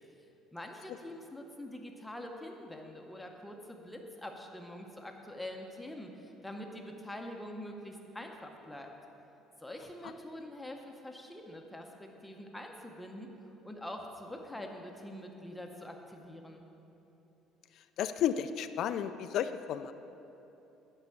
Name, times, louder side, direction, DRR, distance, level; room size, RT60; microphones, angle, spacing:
voice 1, 0.5-8.9 9.6-13.3 13.6-16.7, left 1 dB, 5° left, 2 dB, 0.7 m, -45 dB
voice 2, 18.0-19.9, left 9 dB, 55° left, 10 dB, 0.3 m, -32 dB
11.5 x 5.4 x 8.3 m, 3.0 s
cardioid pair, 155°, 0 cm